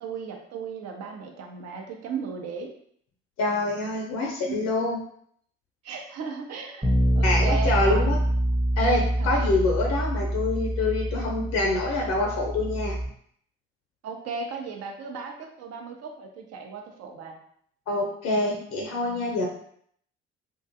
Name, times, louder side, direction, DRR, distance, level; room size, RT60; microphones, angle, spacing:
voice 1, 0.0-2.7 4.5-4.7 5.8-6.9 7.1-8.1 9.2-9.5 14.0-17.4, right 5 dB, 55° right, 2 dB, 0.6 m, -36 dB
voice 2, 3.4-5.0 7.2-8.2 8.8-13.0 17.9-19.5, left 2 dB, 55° left, -1 dB, 0.6 m, -26 dB
Bass guitar, 6.8-13.1, right 1 dB, 15° right, 0.8 m, -25 dB
2.4 x 2.2 x 2.6 m, 0.64 s
figure-of-eight pair, 50°, 31 cm